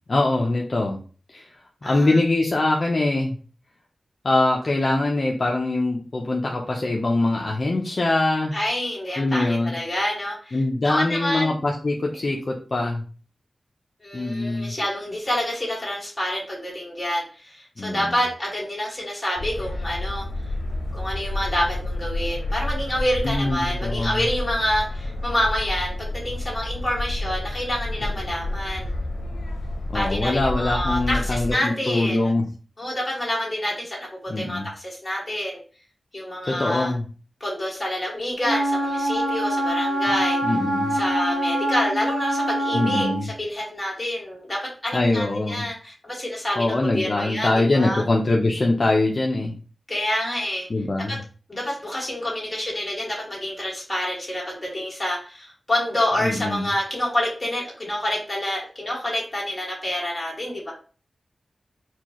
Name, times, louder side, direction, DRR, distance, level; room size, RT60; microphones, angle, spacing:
voice 1, 0.1-1.0 1.3-1.6 1.8-3.4 4.2-8.5 9.2-9.8 10.5-13.0 14.1-14.7 17.8-18.2 23.2-24.2 29.9-32.5 34.3-34.7 36.5-37.0 40.4-41.0 42.7-43.3 44.9-45.7 46.6-49.6 50.7-51.2 56.2-56.7, left 2 dB, 45° left, 0 dB, 0.5 m, -23 dB
voice 2, 1.8-2.2 8.5-10.6 10.8-11.5 14.0-20.3 20.9-28.9 29.9-32.3 32.8-35.6 36.1-36.9 37.4-40.4 40.9-48.0 49.9-50.7 51.1-51.2 51.5-60.7, left 1 dB, 20° left, -4 dB, 1.8 m, -27 dB
sound 1, 19.4-31.5, left 1 dB, 85° left, 0.6 m, -30 dB
Wind instrument woodwind instrument, 38.4-43.2, right 1 dB, 20° right, 0.9 m, -24 dB
4.4 x 2.3 x 2.9 m, 0.38 s
wide cardioid pair, 115°, 0 cm